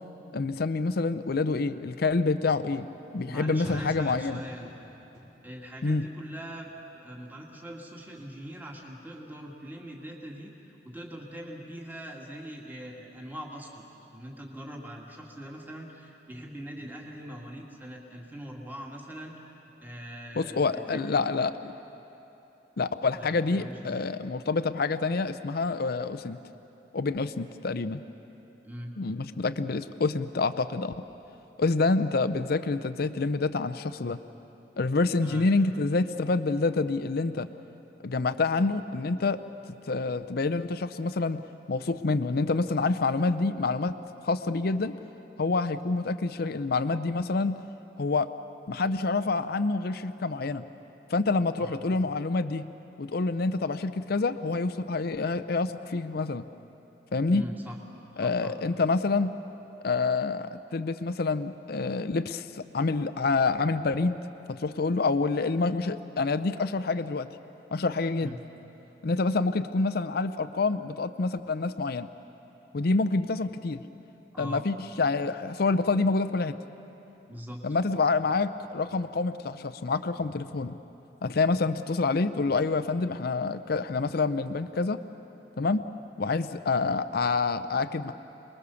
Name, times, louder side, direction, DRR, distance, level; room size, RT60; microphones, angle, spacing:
voice 1, 0.3-2.9 3.1-4.4 5.8-6.1 20.4-21.7 22.8-26.4 26.9-28.0 29.0-30.9 31.6-34.2 34.8-37.5 38.0-39.4 39.8-43.9 44.2-45.0 45.4-47.6 48.0-48.3 48.7-50.6 51.1-52.7 53.0-56.5 57.1-57.5 58.2-59.3 59.8-64.1 64.5-67.3 67.7-68.4 69.0-72.1 72.7-73.8 74.4-76.6 77.6-80.8 81.2-85.0 85.6-85.9 86.2-88.1, left 3 dB, 55° left, 12 dB, 0.6 m, -27 dB
sound 1, 2.6-2.7 3.2-3.3 3.6-4.1 4.4-4.8 5.1-5.5 5.9-6.3 6.6-7.0 7.4-7.5, left 1 dB, 35° right, 3.8 m, -44 dB
voice 2, 3.2-4.7 5.4-19.3 19.8-21.2 23.1-24.1 28.6-28.9 35.2-35.5 51.6-51.9 57.3-57.8 58.2-58.6 68.2-68.4 74.3-74.6 77.3-77.6, equal, 10° right, -1 dB, 2.1 m, -42 dB
28.0 x 21.0 x 7.0 m, 3.0 s
head